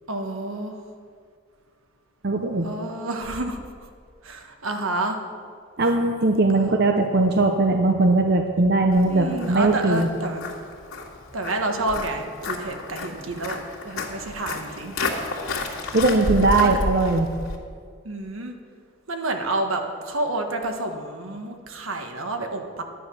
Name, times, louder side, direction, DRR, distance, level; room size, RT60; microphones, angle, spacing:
voice 1, 0.1-0.8 2.6-3.6 4.2-5.2 6.5-6.7 9.1-10.5 11.3-14.9 16.6-16.7 18.0-18.5 19.1-22.8, right 2 dB, 80° right, 4 dB, 1.4 m, -29 dB
voice 2, 2.2-2.7 5.8-10.1 15.9-17.3, right 2 dB, 50° right, 4 dB, 0.7 m, -20 dB
Walk footsteps, 8.9-17.6, left 2 dB, 85° left, 2.2 m, -31 dB
11.5 x 10.0 x 6.2 m, 2.1 s
head